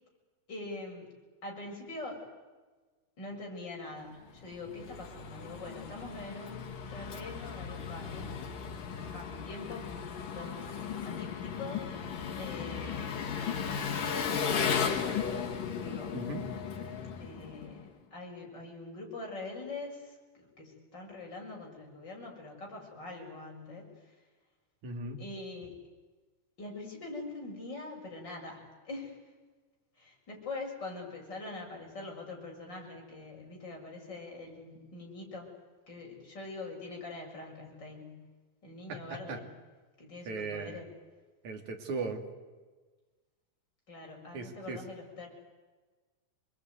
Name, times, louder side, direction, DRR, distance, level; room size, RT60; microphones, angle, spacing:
voice 1, 0.5-1.1 1.4-2.2 3.2-8.5 9.0-9.9 10.3-12.1 12.4-13.8 15.8-16.2 17.2-24.1 25.2-25.8 26.6-29.2 30.0-35.5 35.9-38.2 38.6-39.4 40.0-40.9 43.9-45.3, left 2 dB, 30° left, -1 dB, 7.7 m, -44 dB
Engine, 4.3-17.9, left 6 dB, 85° left, 4.1 m, -36 dB
voice 2, 24.8-25.2 38.9-39.4 40.3-40.8 41.4-42.2 44.3-44.8, right 3 dB, 65° right, 4 dB, 4.1 m, -38 dB
27.5 x 22.5 x 9.7 m, 1.3 s
omnidirectional pair, 3.7 m